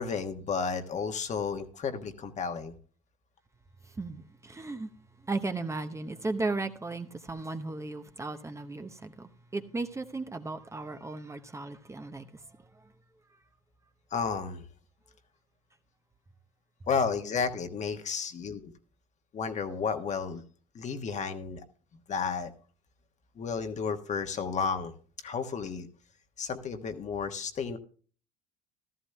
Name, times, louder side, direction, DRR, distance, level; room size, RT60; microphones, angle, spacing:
voice 1, 0.0-2.7 14.1-14.6 16.9-18.7 19.3-20.4 20.7-21.6 22.1-22.5 23.4-24.9 25.2-25.9 26.4-27.8, left 5 dB, 40° left, 7 dB, 1.3 m, -32 dB
voice 2, 4.0-4.9 5.3-12.3, right 3 dB, 15° right, 7 dB, 0.8 m, -35 dB
15.0 x 13.0 x 2.2 m, 0.41 s
hypercardioid pair, 75°, 18 cm